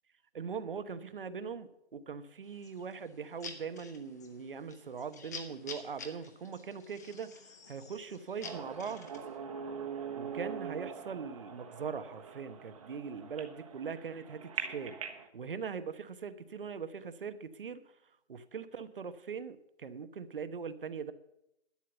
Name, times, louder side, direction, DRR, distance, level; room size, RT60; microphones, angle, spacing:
voice 1, 0.3-9.1 10.1-15.0 15.3-18.0 18.3-21.1, right 6 dB, 55° right, 12 dB, 1.1 m, -41 dB
sound 1, 2.4-9.4, left 4 dB, 15° left, 0.7 m, -50 dB
sound 2, 8.4-15.3, right 6 dB, 30° right, 1.3 m, -42 dB
11.5 x 7.4 x 7.8 m, 0.84 s
hypercardioid pair, 160°, 33 cm